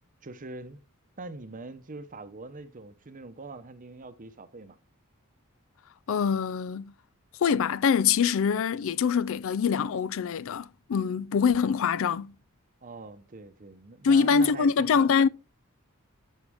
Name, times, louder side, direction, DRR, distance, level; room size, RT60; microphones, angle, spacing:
voice 1, 0.2-0.8 1.2-4.8 12.8-15.1, right 3 dB, 40° right, 0.8 m, -43 dB
voice 2, 6.1-6.9 7.4-12.3 14.0-15.3, left 6 dB, 65° left, 0.4 m, -24 dB
11.0 x 6.4 x 3.5 m
head